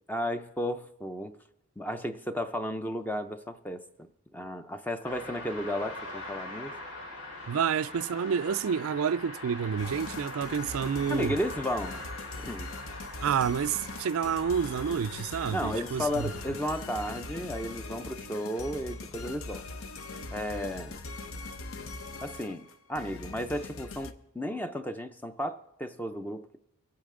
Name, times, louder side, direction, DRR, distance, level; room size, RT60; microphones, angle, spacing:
voice 1, 0.1-1.4 1.8-6.7 11.1-12.0 12.4-12.7 15.5-19.6 20.3-21.0 22.2-26.6, equal, 10° left, 0.5 m, -34 dB
sound 1, 5.0-17.3, left 2 dB, 90° left, 3.5 m, -43 dB
voice 2, 7.5-11.3 13.2-16.3, right 7 dB, 75° right, 0.4 m, -29 dB
sound 2, 9.8-24.1, left 3 dB, 70° left, 0.8 m, -41 dB
24.0 x 8.6 x 3.7 m
head